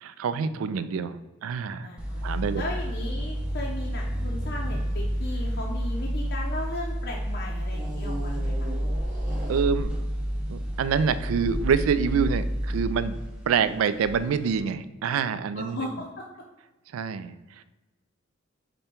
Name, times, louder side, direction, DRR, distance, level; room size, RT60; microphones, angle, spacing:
voice 1, 0.0-1.9 2.2-2.6 9.5-9.9 10.5-13.2 13.5-15.9 16.9-17.6, right 6 dB, 85° right, 13 dB, 0.3 m, -26 dB
voice 2, 1.8-2.2 2.5-8.7 15.5-16.3, left 2 dB, 50° left, -2 dB, 0.5 m, -36 dB
sound 1, 2.0-14.6, equal, 5° right, 0.5 m, -30 dB
sound 2, 2.2-6.9 7.7-10.2 10.9-11.0, right 1 dB, 40° right, 0.9 m, -41 dB
5.2 x 2.2 x 4.3 m, 1.1 s
head